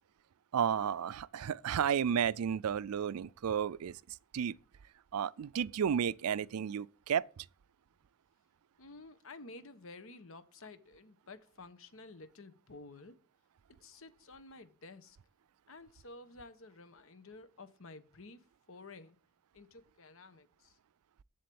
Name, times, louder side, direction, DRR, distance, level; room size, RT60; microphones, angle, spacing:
voice 1, 0.5-4.0 4.3-4.5 5.1-7.2, right 8 dB, 85° right, 0.4 m, -32 dB
voice 2, 8.8-13.2 13.8-15.2 15.7-19.2 19.5-20.8, left 3 dB, 65° left, 1.2 m, -52 dB
7.7 x 7.6 x 8.6 m
head